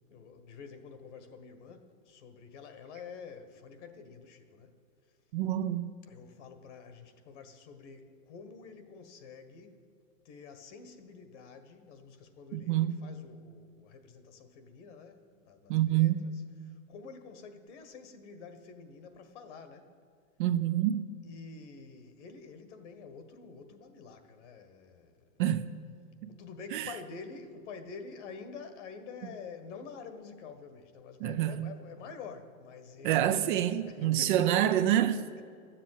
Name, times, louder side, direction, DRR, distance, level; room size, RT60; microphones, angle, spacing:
voice 1, 0.1-4.7 6.1-9.8 10.2-16.1 16.6-19.9 21.2-25.1 26.3-33.5 33.9-34.6, left 5 dB, 60° left, 1.7 m, -48 dB
voice 2, 5.3-5.9 12.5-13.0 15.7-16.2 20.4-21.1 25.4-25.6 26.2-26.3 26.7-26.9 31.2-31.7 33.0-35.4, right 12 dB, 40° right, 0.5 m, -27 dB
13.0 x 7.6 x 9.0 m
hypercardioid pair, 145°, 40 cm